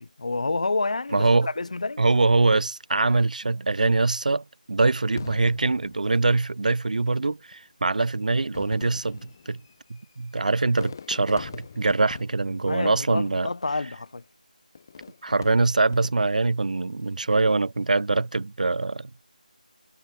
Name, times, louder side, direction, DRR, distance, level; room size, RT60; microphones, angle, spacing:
voice 1, 0.0-2.0 12.6-14.2, left 3 dB, 50° left, 0.7 m, -29 dB
voice 2, 1.1-1.5 2.0-9.2 9.5-9.6 9.9-13.5 15.2-19.1, right 3 dB, 60° right, 0.3 m, -23 dB
Fireworks, 5.2-6.8 7.6-7.7 8.4-13.7 14.7-16.5 17.1-17.6, left 6 dB, 25° left, 6.1 m, -44 dB
figure-of-eight pair, 170°, 5 cm